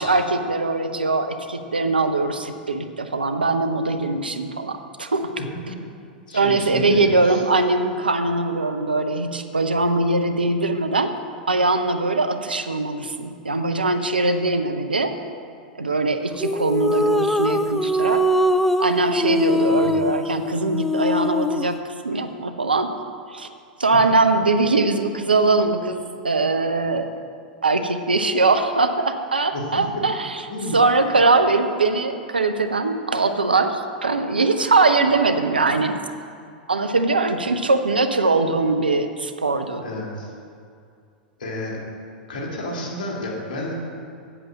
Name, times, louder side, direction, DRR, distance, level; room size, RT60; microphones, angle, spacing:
voice 1, 0.0-5.3 6.3-11.1 11.5-15.1 15.8-18.2 18.8-22.9 23.3-23.5 23.8-27.1 27.6-30.4 30.7-36.0 36.7-39.8, right 3 dB, 85° right, 7 dB, 0.8 m, -21 dB
voice 2, 6.3-7.4 19.7-19.9 29.5-29.6 30.5-30.8 39.8-40.3 41.4-41.8 42.3-43.7, left 1 dB, 60° left, -3 dB, 2.9 m, -31 dB
sound 1, 16.4-21.8, left 1 dB, 5° left, 0.3 m, -22 dB
8.0 x 7.7 x 7.4 m, 2.3 s
figure-of-eight pair, 95°, 5 cm